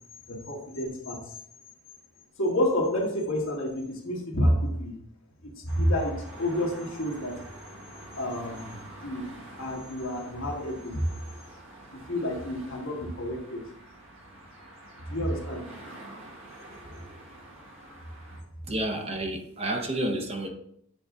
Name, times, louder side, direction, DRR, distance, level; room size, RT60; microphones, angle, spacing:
voice 1, 0.3-1.3 2.4-4.9 5.4-7.4 8.2-11.1 11.9-13.7 15.0-15.7, equal, 65° left, -1 dB, 1.4 m, -29 dB
sound 1, 5.7-18.4, right 1 dB, 70° right, 1.4 m, -47 dB
voice 2, 18.7-20.5, right 1 dB, 25° right, 3 dB, 0.6 m, -30 dB
7.8 x 3.5 x 3.5 m, 0.71 s
head